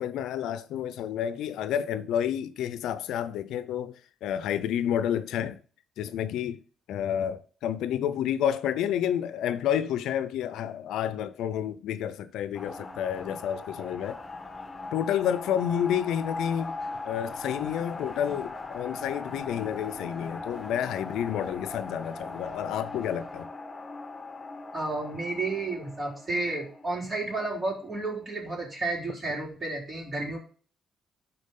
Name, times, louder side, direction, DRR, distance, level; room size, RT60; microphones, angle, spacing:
voice 1, 0.0-5.6 6.0-6.6 6.9-14.2 14.9-16.8 17.0-23.5, left 9 dB, 85° left, 0.5 m, -30 dB
sound 1, 12.5-28.4, left 3 dB, 20° left, 1.4 m, -40 dB
voice 2, 24.7-30.4, right 2 dB, 25° right, 3.9 m, -32 dB
12.0 x 4.4 x 3.7 m
cardioid pair, 90°, 0 cm